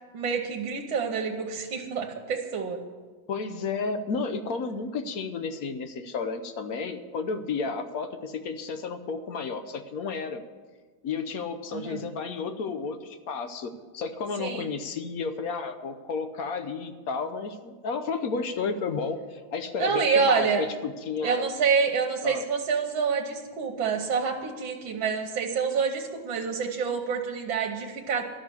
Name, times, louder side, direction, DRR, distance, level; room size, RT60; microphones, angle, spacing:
voice 1, 0.1-2.8 11.7-12.1 14.4-14.7 19.8-20.7 21.2-28.2, right 5 dB, 80° right, 2 dB, 1.8 m, -27 dB
voice 2, 3.3-10.4 11.0-21.5 22.2-22.4, left 4 dB, 60° left, 8 dB, 1.1 m, -32 dB
12.5 x 6.5 x 9.6 m, 1.4 s
omnidirectional pair, 2.1 m